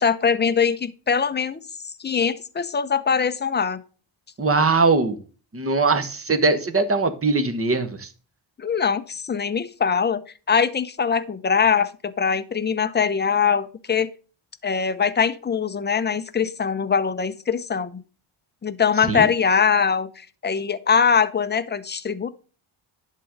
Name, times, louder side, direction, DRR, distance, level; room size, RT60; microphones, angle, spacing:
voice 1, 0.0-1.6 2.0-3.8 8.6-10.2 10.5-14.1 14.6-18.0 18.6-22.3, left 6 dB, 20° left, 12 dB, 0.6 m, -22 dB
voice 2, 4.4-5.2 5.5-8.1 19.1-19.3, right 3 dB, 25° right, 9 dB, 1.2 m, -21 dB
11.0 x 3.8 x 6.4 m, 0.37 s
wide cardioid pair, 125°, 49 cm